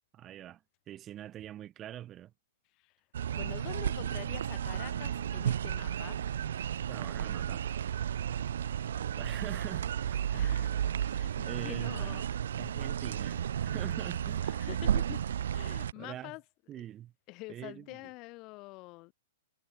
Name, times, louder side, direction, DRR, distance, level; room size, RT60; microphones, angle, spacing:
voice 1, 0.1-2.3 6.9-7.7 9.2-10.6 11.5-12.2 12.6-14.5 16.0-16.3 16.7-17.1 17.5-18.0, right 12 dB, 25° right, 2.2 m, -44 dB
sound 1, 3.1-15.9, right 9 dB, 75° right, 0.9 m, -33 dB
voice 2, 3.3-6.2 10.3-12.3 13.6-13.7 14.5-15.2 15.5-16.4 16.7-16.9 17.3-19.1, left 23 dB, 35° left, 3.3 m, -46 dB
hypercardioid pair, 140°, 0 cm